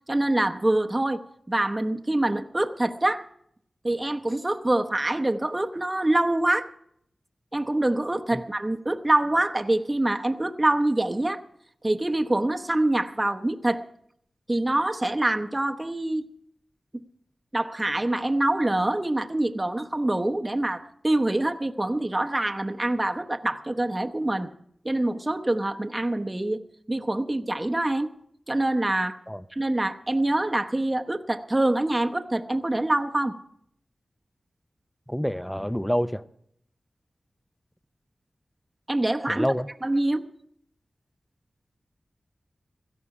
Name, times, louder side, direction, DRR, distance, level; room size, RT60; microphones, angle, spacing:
voice 1, 0.1-1.2 1.5-3.3 3.8-6.7 7.5-11.4 11.8-13.8 14.5-16.3 17.5-24.5 24.8-26.6 26.9-28.1 28.5-29.2 29.5-33.4 38.9-39.5 39.8-40.3, right 1 dB, 25° right, 6 dB, 0.9 m, -25 dB
voice 2, 35.1-36.2 39.3-39.7, equal, 5° left, 14 dB, 0.6 m, -27 dB
17.0 x 14.0 x 4.9 m, 0.70 s
wide cardioid pair, 65°, 0 cm